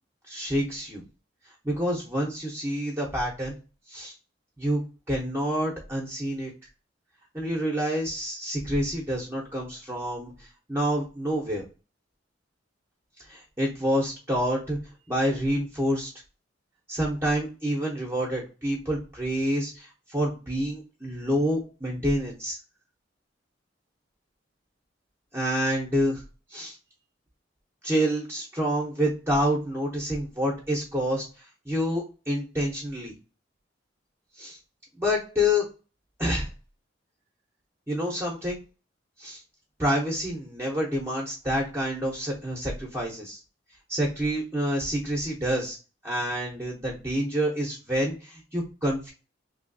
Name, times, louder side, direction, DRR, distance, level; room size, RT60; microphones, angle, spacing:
voice 1, 0.3-1.0 1.6-3.5 3.9-4.1 4.6-4.8 5.1-6.5 7.3-10.3 10.7-11.6 13.3-14.8 15.1-16.1 16.9-22.6 25.3-26.2 26.5-26.7 27.8-31.2 31.7-33.1 34.4-34.6 35.0-35.6 36.2-36.5 37.9-38.6 39.2-39.4 39.8-43.4 43.9-45.8 46.0-49.1, equal, 15° right, -3 dB, 0.7 m, -28 dB
3.0 x 2.7 x 2.5 m, 0.32 s
head